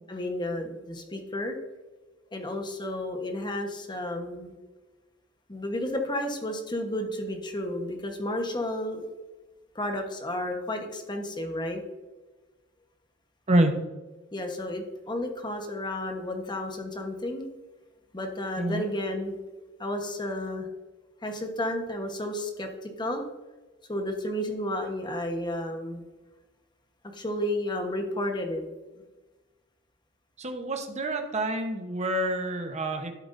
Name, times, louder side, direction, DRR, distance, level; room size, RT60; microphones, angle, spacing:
voice 1, 0.1-1.6 2.3-4.5 5.5-9.1 9.7-11.8 14.3-17.5 18.1-19.4 19.8-20.7 21.2-23.3 23.9-26.0 27.1-28.7, left 1 dB, 20° left, 4 dB, 1.1 m, -32 dB
voice 2, 30.4-33.1, right 1 dB, 35° right, 5 dB, 1.0 m, -27 dB
11.5 x 7.7 x 2.6 m, 1.2 s
head